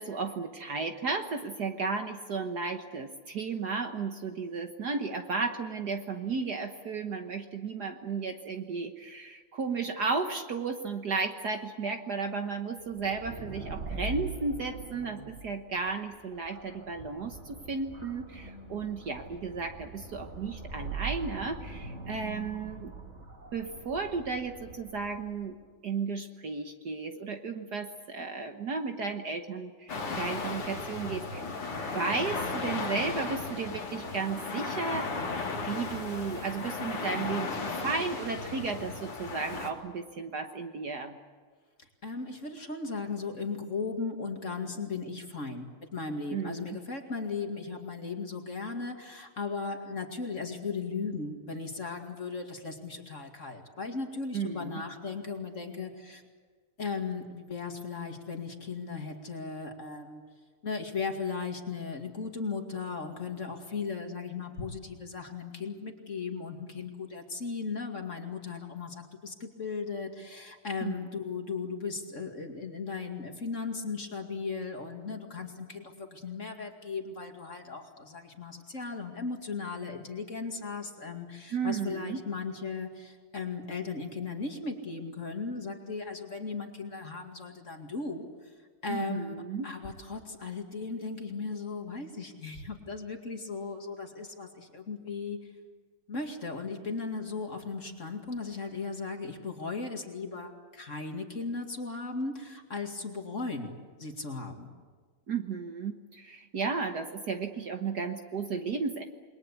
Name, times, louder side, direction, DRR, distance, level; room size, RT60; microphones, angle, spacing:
voice 1, 0.0-22.9 23.5-25.6 25.8-35.1 35.7-41.2 46.3-46.8 54.3-54.8 70.8-70.9 81.5-82.2 88.9-89.7 105.3-109.0, right 4 dB, 50° right, 5 dB, 1.6 m, -34 dB
sound 1, 12.9-25.5, right 3 dB, 30° right, 2.3 m, -42 dB
voice 2, 18.4-18.9 42.0-56.2 56.8-60.2 60.6-88.5 88.8-89.3 89.6-95.5 96.1-103.7 104.0-104.7, left 4 dB, 35° left, 3 dB, 2.5 m, -37 dB
sound 2, 29.9-39.7, left 3 dB, 85° left, 3.4 m, -35 dB
28.5 x 21.5 x 8.4 m, 1.5 s
omnidirectional pair, 2.4 m